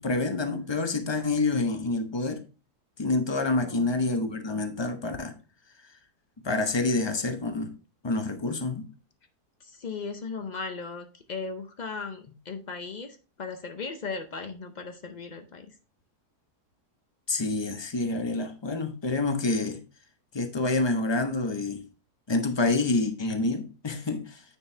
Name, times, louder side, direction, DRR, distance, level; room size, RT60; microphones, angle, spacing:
voice 1, 0.0-2.4 3.0-5.4 6.4-7.7 8.0-8.9 17.3-19.8 20.3-21.8 22.3-24.4, left 3 dB, 25° left, 0.5 m, -27 dB
voice 2, 3.6-3.9 9.7-15.7, left 4 dB, 90° left, 0.4 m, -37 dB
9.3 x 4.6 x 3.3 m
omnidirectional pair, 1.7 m